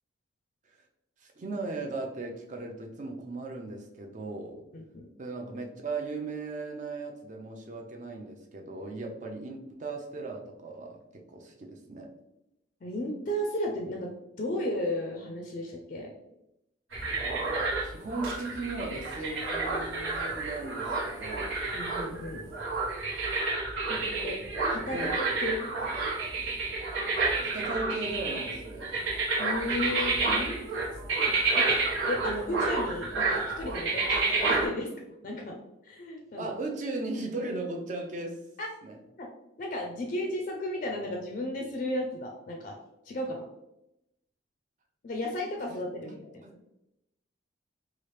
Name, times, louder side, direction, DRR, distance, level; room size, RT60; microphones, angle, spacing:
voice 1, 1.2-4.7 5.2-12.1 17.8-21.6 24.9-25.2 27.4-29.1 36.4-38.4 38.8-39.0 45.7-46.2 46.4-46.6, right 3 dB, 40° right, 2 dB, 0.4 m, -37 dB
voice 2, 4.7-5.1 12.8-16.1 21.7-22.4 23.9-24.4 24.7-25.7 29.4-30.9 31.3-31.8 32.1-34.9 35.2-35.5 35.8-36.5 38.6-38.7 39.2-39.3 39.6-42.8 43.0-43.4 45.0-46.2, left 1 dB, 40° left, 1 dB, 0.3 m, -34 dB
sound 1, 16.9-34.7, right 3 dB, 80° right, 1.1 m, -30 dB
3.1 x 2.4 x 3.1 m, 0.87 s
head